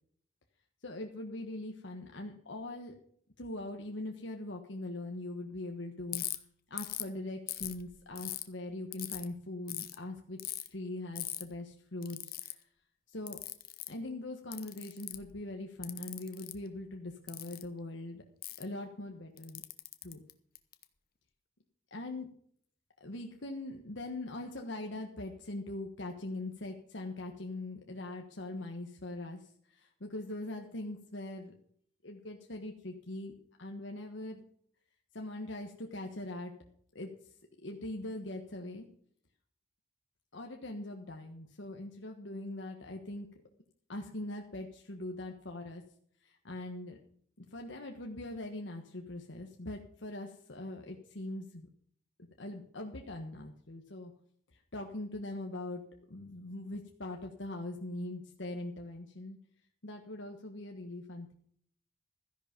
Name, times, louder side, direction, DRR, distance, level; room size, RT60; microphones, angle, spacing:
voice 1, 0.8-2.9 3.4-6.2 6.7-10.4 10.7-12.6 13.1-13.4 13.9-18.2 18.6-19.6 20.0-20.2 21.9-22.3 23.0-31.5 32.0-33.3 33.6-34.4 35.1-36.5 36.9-37.1 37.6-38.9 40.3-43.3 43.9-45.8 46.2-47.0 47.4-51.7 52.2-54.1 54.5-55.8 56.1-59.4 59.8-61.3, left 2 dB, 65° left, 2 dB, 1.4 m, -41 dB
Ratchet pawl, 6.1-6.4 6.8-7.1 7.5-8.4 8.9-9.2 9.7-9.9 10.4-10.7 11.2-11.4 12.0-12.5 13.3-13.9 14.5-15.3 15.8-16.5 17.3-17.6 18.4-18.6 19.4-20.8, left 14 dB, 45° left, 1.0 m, -39 dB
14.0 x 10.5 x 5.3 m, 0.63 s
head